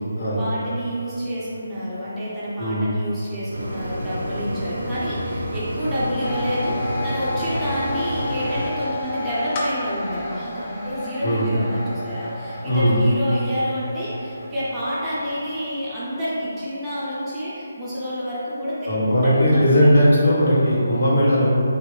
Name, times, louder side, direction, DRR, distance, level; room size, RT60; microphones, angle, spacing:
voice 1, 0.2-18.8 19.2-19.9, equal, 10° right, -11 dB, 0.7 m, -29 dB
voice 2, 2.6-2.9 11.2-11.5 12.7-13.0 18.8-21.6, equal, 60° left, -9 dB, 1.2 m, -18 dB
sound 1, 3.5-8.7, equal, 70° right, 0.7 m, -29 dB
sound 2, 6.2-15.8, left 2 dB, 25° left, 0.5 m, -32 dB
3.4 x 2.6 x 3.2 m, 2.6 s
figure-of-eight pair, 150°, 0 cm